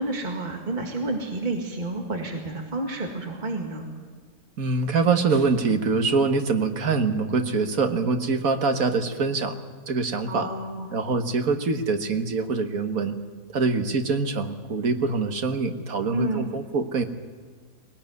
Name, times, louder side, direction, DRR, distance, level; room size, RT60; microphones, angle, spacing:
voice 1, 0.0-3.8 10.3-10.9 16.1-16.5, right 2 dB, 30° right, 2 dB, 2.2 m, -30 dB
voice 2, 4.6-9.6 9.9-10.5 10.9-13.2 13.5-17.0, right 4 dB, 70° right, 7 dB, 1.9 m, -24 dB
21.5 x 18.5 x 9.4 m, 1.5 s
omnidirectional pair, 1.5 m